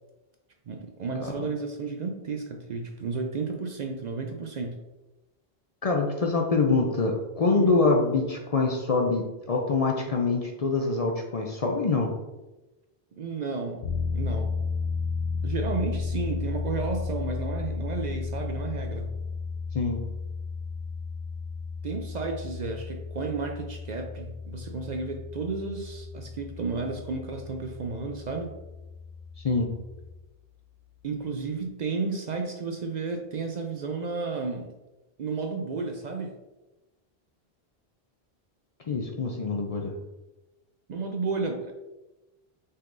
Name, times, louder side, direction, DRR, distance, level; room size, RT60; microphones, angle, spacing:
voice 1, 0.7-4.8 7.5-7.8 13.2-13.9 14.1-14.6 15.4-19.1 21.8-28.5 31.0-34.7 35.2-36.3 40.9-41.7, right 4 dB, 55° right, 3 dB, 0.5 m, -32 dB
voice 2, 5.8-12.1 19.7-20.0 29.4-29.7 38.9-39.9, left 3 dB, 45° left, 1 dB, 0.5 m, -25 dB
sound 1, 13.8-30.2, left 4 dB, 90° left, 0.9 m, -34 dB
5.4 x 3.7 x 2.6 m, 1.1 s
omnidirectional pair, 1.0 m